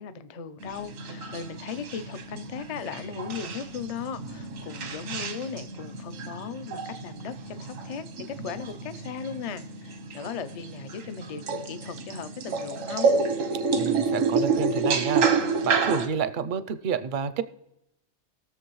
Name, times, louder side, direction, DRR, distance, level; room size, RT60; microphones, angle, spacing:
voice 1, 0.0-13.1, left 6 dB, 55° left, 0.4 m, -37 dB
sound 1, 0.6-16.1, right 4 dB, 90° right, 1.3 m, -29 dB
voice 2, 13.7-15.3 15.6-17.4, right 7 dB, 60° right, 0.5 m, -29 dB
19.5 x 6.8 x 3.1 m
omnidirectional pair, 1.3 m